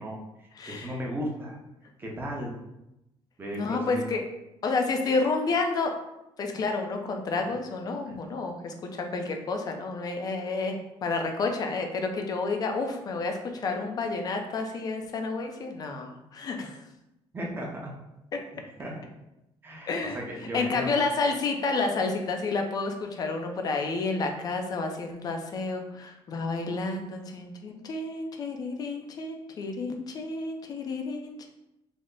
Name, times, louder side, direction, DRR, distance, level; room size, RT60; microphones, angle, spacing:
voice 1, 0.0-1.6 2.0-2.5 3.4-4.0 8.1-8.2 17.3-17.9 18.5-19.0 19.6-20.9, equal, 20° right, -1 dB, 0.7 m, -36 dB
voice 2, 0.6-0.9 3.5-4.2 4.6-5.9 6.4-16.8 18.3-18.4 19.9-20.2 20.5-31.5, left 3 dB, 40° left, 4 dB, 0.5 m, -30 dB
3.3 x 2.1 x 3.8 m, 0.89 s
cardioid pair, 140°, 10 cm